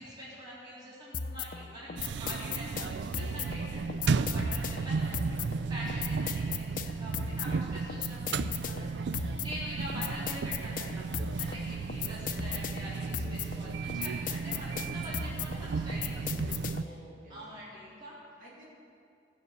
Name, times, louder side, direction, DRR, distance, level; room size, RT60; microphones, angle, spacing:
voice 1, 0.0-5.1 5.4-16.5 16.7-16.9 17.3-18.2, equal, 25° right, -9 dB, 3.4 m, -44 dB
sound 1, 1.1-17.0, left 6 dB, 50° left, 0.6 m, -38 dB
sound 2, 2.0-16.8, right 4 dB, 85° right, 0.4 m, -34 dB
voice 2, 2.4-2.7 11.4-11.9 16.8-17.5 18.4-18.7, right 1 dB, 45° right, -8 dB, 3.2 m, -54 dB
15.5 x 6.6 x 8.0 m, 2.5 s
head